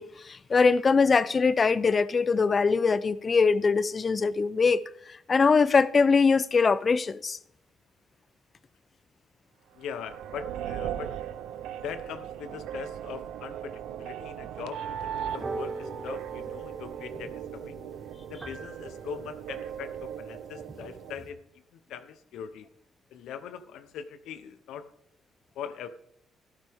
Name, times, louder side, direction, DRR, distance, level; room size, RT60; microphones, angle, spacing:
voice 1, 0.0-4.8 5.1-7.4, left 5 dB, 35° left, 0.5 m, -22 dB
voice 2, 9.7-11.1 11.8-17.8 18.3-21.4 21.7-22.7 23.1-24.9 25.5-25.9, left 7 dB, 85° left, 0.9 m, -41 dB
sound 1, 9.8-21.2, right 10 dB, 90° right, 0.6 m, -38 dB
sound 2, 15.3-21.3, right 3 dB, 25° right, 1.3 m, -42 dB
12.5 x 12.0 x 3.6 m
cardioid pair, 90°, 0 cm